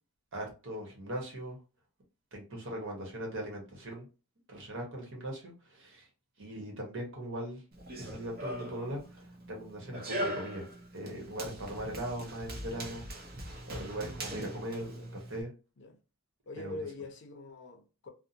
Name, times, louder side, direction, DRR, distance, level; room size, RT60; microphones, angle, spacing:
voice 1, 0.3-1.6 2.3-4.1 4.5-6.1 6.4-7.6 7.9-10.7 10.9-13.3 13.6-15.5 16.6-16.7, right 1 dB, 60° right, 1.1 m, -40 dB
Run, 7.7-15.4, right 1 dB, 40° right, 0.7 m, -41 dB
voice 2, 14.8-15.2 15.8-16.0 16.5-18.1, left 2 dB, 50° left, 0.5 m, -44 dB
2.7 x 2.1 x 2.7 m
head